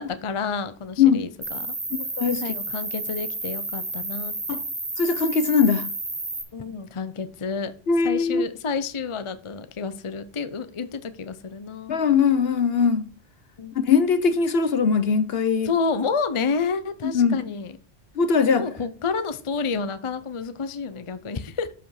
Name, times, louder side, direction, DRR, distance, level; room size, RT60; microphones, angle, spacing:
voice 1, 0.0-1.7 2.4-4.3 6.5-7.7 8.0-12.0 13.6-13.7 15.6-17.7 18.5-21.7, left 5 dB, 30° left, 0.6 m, -29 dB
Cricket, 1.4-6.4, right 2 dB, 40° right, 3.1 m, -31 dB
voice 2, 1.9-2.6 4.5-4.6 5.0-5.9 7.9-8.5 11.9-13.1 13.9-15.7 17.0-17.4 18.1-18.7, left 6 dB, 55° left, 1.0 m, -21 dB
12.5 x 5.1 x 4.8 m
omnidirectional pair, 1.3 m